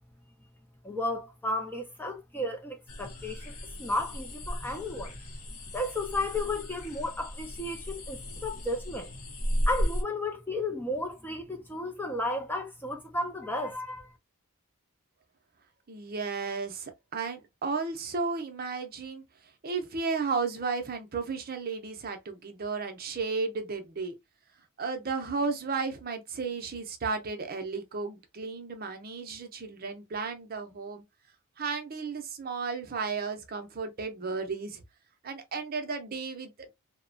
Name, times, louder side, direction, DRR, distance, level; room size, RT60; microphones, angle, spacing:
voice 1, 0.8-5.1 5.7-9.1 9.7-14.1, left 1 dB, 10° left, 0.4 m, -33 dB
sound 1, 2.9-10.0, equal, 85° left, 0.8 m, -35 dB
voice 2, 15.9-19.2 19.6-24.1 24.8-31.0 31.6-34.8 35.2-36.7, right 4 dB, 40° right, 0.6 m, -34 dB
2.8 x 2.1 x 2.6 m
head